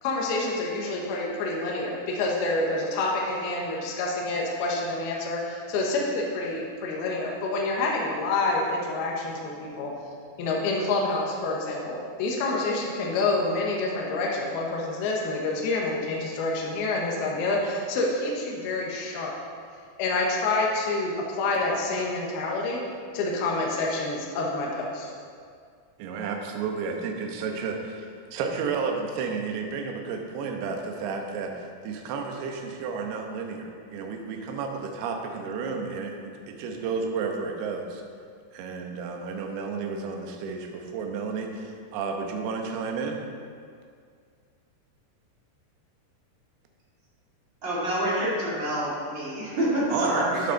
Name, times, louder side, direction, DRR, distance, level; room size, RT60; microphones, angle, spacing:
voice 1, 0.0-9.9 10.4-19.3 20.0-22.8 23.1-25.1, left 2 dB, 70° left, -2 dB, 2.8 m, -27 dB
voice 2, 26.0-38.0 38.5-43.2 49.9-50.5, right 5 dB, 70° right, 2 dB, 2.7 m, -32 dB
voice 3, 47.6-50.4, right 1 dB, 35° right, -7 dB, 2.0 m, -27 dB
13.0 x 8.2 x 4.0 m, 2.2 s
omnidirectional pair, 5.4 m